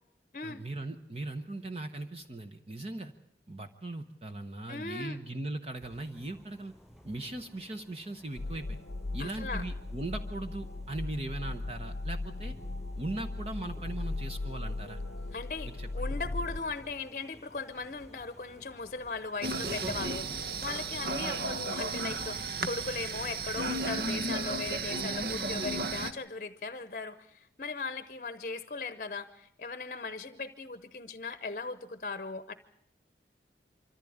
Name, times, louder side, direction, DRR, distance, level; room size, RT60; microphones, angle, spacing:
voice 1, 0.4-3.1 3.5-6.7 7.0-8.8 9.1-12.6 13.0-15.0 15.6-16.1, right 2 dB, 35° right, 7 dB, 0.9 m, -39 dB
voice 2, 4.7-5.2 9.2-9.6 15.3-32.5, left 4 dB, 45° left, 11 dB, 0.8 m, -38 dB
sound 1, 5.8-20.9, equal, 5° right, 5.6 m, -54 dB
sound 2, 8.4-16.6, left 2 dB, 80° left, 0.7 m, -37 dB
sound 3, 19.4-26.1, right 3 dB, 60° right, 1.0 m, -34 dB
25.0 x 14.5 x 8.6 m, 0.79 s
head